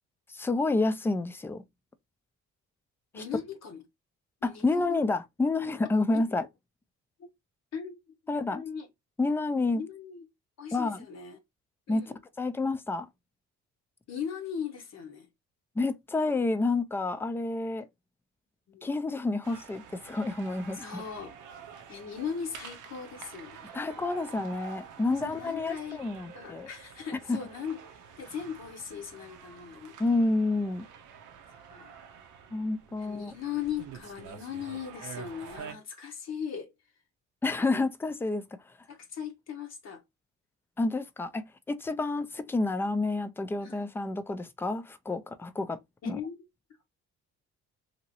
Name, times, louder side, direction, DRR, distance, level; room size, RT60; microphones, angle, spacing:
voice 1, 0.3-1.6 3.1-3.2 4.4-6.5 8.3-8.6 9.2-9.8 10.7-11.0 11.9-13.1 15.8-17.9 18.8-21.0 23.7-26.7 27.3-27.4 30.0-30.8 32.5-33.3 37.4-38.4 40.8-45.8 46.1-46.2, left 3 dB, 10° left, 0.3 m, -29 dB
voice 2, 3.1-3.8 4.4-5.0 6.1-6.2 7.2-7.3 7.7-8.0 8.3-8.9 9.7-10.3 10.6-11.4 11.9-12.2 14.1-15.3 18.7-18.9 20.7-21.4 21.9-23.7 25.1-26.0 26.3-27.8 28.2-30.0 31.5-31.9 33.0-36.7 38.9-40.0 43.6-43.9 46.0-46.4, left 7 dB, 60° left, 0.7 m, -38 dB
sound 1, 19.4-35.7, right 7 dB, 85° right, 0.6 m, -48 dB
2.9 x 2.6 x 2.7 m
cardioid pair, 90°, 30 cm